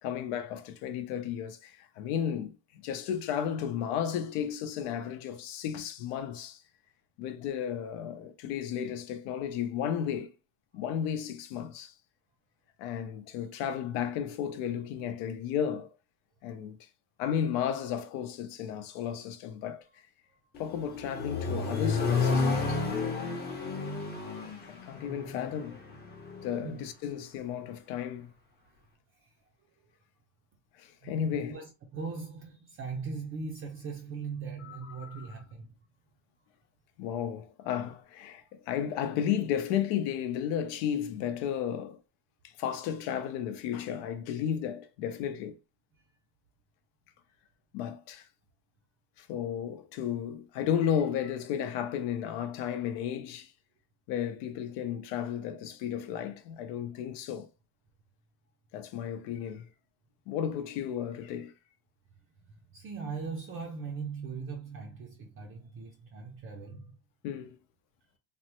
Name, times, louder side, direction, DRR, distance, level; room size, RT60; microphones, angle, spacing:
voice 1, 0.0-6.6 7.2-10.3 10.7-11.9 12.8-15.9 16.4-16.8 17.2-19.8 20.6-22.8 24.6-25.8 26.4-28.3 30.8-31.6 34.6-35.3 37.0-42.0 42.4-45.5 47.7-48.3 49.2-53.5 54.1-57.5 58.7-59.7 60.3-61.5 67.2-67.6, left 9 dB, 75° left, 0.7 m, -33 dB
Accelerating revving vroom, 20.6-26.6, left 4 dB, 25° left, 0.7 m, -31 dB
voice 2, 31.0-35.7 62.7-66.9, right 5 dB, 30° right, 0.4 m, -39 dB
3.3 x 2.1 x 2.9 m
cardioid pair, 160°, 43 cm